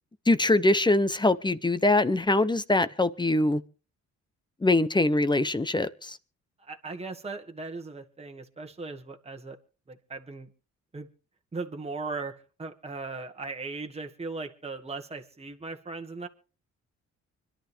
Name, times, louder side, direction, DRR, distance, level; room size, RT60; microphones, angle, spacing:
voice 1, 0.3-3.6 4.6-6.2, left 2 dB, 15° left, 0.8 m, -23 dB
voice 2, 6.7-9.6 9.9-10.5 10.9-11.1 11.5-16.3, right 3 dB, 20° right, 1.6 m, -38 dB
25.0 x 11.5 x 3.4 m
cardioid pair, 100°, 29 cm